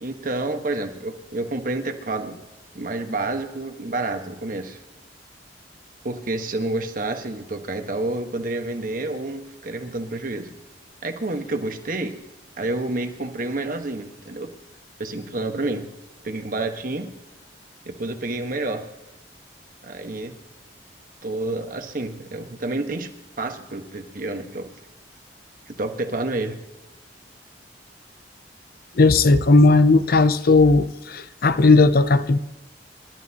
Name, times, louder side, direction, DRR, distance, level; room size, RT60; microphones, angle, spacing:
voice 1, 0.0-2.4 2.7-4.8 6.0-10.5 11.0-12.1 12.6-14.5 15.0-15.9 16.2-17.1 17.8-18.9 19.8-20.3 21.2-23.1 23.4-24.7 25.7-26.6, right 2 dB, 50° right, 1.3 m, -29 dB
voice 2, 29.0-32.4, left 3 dB, 55° left, 0.6 m, -16 dB
27.5 x 12.0 x 2.9 m
head